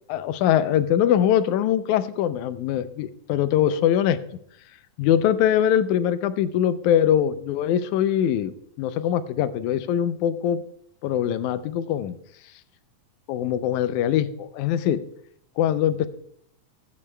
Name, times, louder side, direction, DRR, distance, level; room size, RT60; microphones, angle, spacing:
voice 1, 0.1-4.2 5.0-10.6 11.0-12.2 13.3-15.0 15.6-16.1, left 10 dB, 85° left, 13 dB, 2.0 m, -22 dB
15.5 x 8.4 x 2.2 m, 0.67 s
omnidirectional pair, 3.5 m